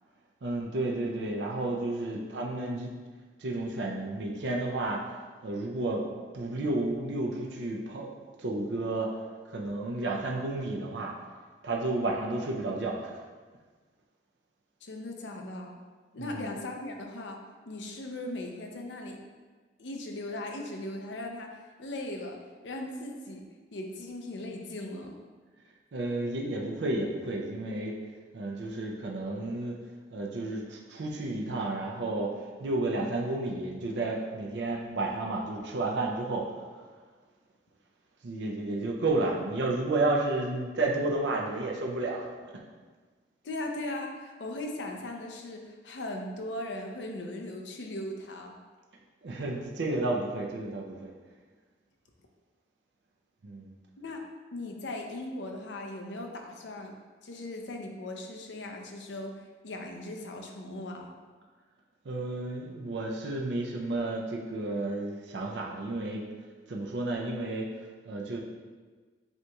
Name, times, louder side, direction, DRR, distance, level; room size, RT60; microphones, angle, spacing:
voice 1, 0.4-2.9 3.4-5.0 5.4-6.1 6.3-8.1 8.4-9.1 9.5-11.1 11.6-13.2 16.2-16.5 25.9-28.0 28.3-29.8 30.1-36.8 38.2-42.6 49.2-51.1 53.4-53.7 62.0-66.2 66.7-68.4, right 2 dB, 80° right, -1 dB, 0.5 m, -32 dB
voice 2, 14.8-15.8 16.1-19.2 19.8-23.4 23.7-25.2 43.4-48.6 54.0-54.3 54.5-56.9 57.2-61.1, left 1 dB, 90° left, 2 dB, 0.6 m, -38 dB
7.8 x 2.9 x 2.3 m, 1.4 s
head